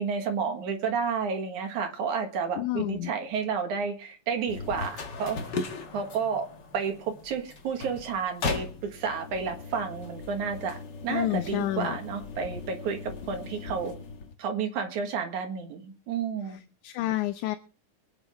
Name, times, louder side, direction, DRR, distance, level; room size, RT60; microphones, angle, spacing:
voice 1, 0.0-5.4 5.9-6.5 6.7-10.8 11.0-13.9 14.4-16.6, right 6 dB, 75° right, 4 dB, 3.1 m, -31 dB
voice 2, 2.6-3.1 11.1-12.0 16.8-17.6, left 14 dB, 80° left, 9 dB, 2.1 m, -29 dB
sound 1, 4.5-14.4, left 4 dB, 45° left, 1.7 m, -38 dB
22.5 x 9.5 x 3.6 m, 0.38 s
omnidirectional pair, 3.6 m